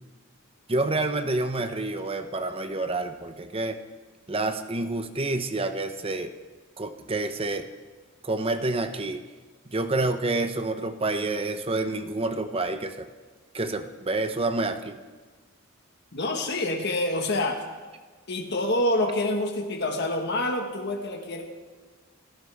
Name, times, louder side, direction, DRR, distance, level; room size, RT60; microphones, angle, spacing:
voice 1, 0.7-3.8 4.3-6.3 6.8-7.7 8.2-9.2 9.7-13.1 13.5-15.0, right 2 dB, 25° right, 8 dB, 0.9 m, -28 dB
voice 2, 16.1-17.6 18.3-21.4, left 1 dB, 55° left, 2 dB, 1.6 m, -27 dB
27.0 x 13.0 x 3.6 m, 1.4 s
head